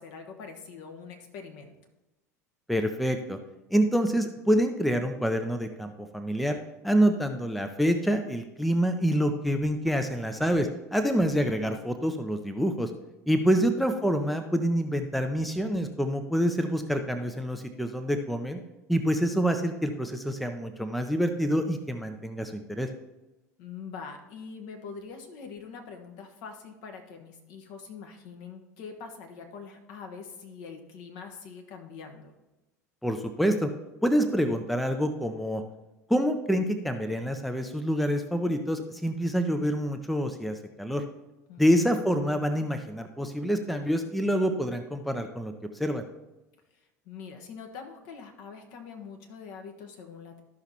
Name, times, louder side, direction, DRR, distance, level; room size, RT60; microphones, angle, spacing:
voice 1, 0.0-1.8 13.3-13.6 23.6-32.3 41.5-42.0 46.7-50.4, left 5 dB, 55° left, 4 dB, 1.3 m, -44 dB
voice 2, 2.7-3.4 3.7-6.6 6.8-12.9 13.3-18.6 18.9-22.9 33.0-33.7 34.0-35.6 36.1-41.0 41.6-45.5 45.8-46.0, equal, ahead, 7 dB, 0.6 m, -27 dB
13.0 x 5.8 x 2.9 m, 1.0 s
figure-of-eight pair, 75°, 9 cm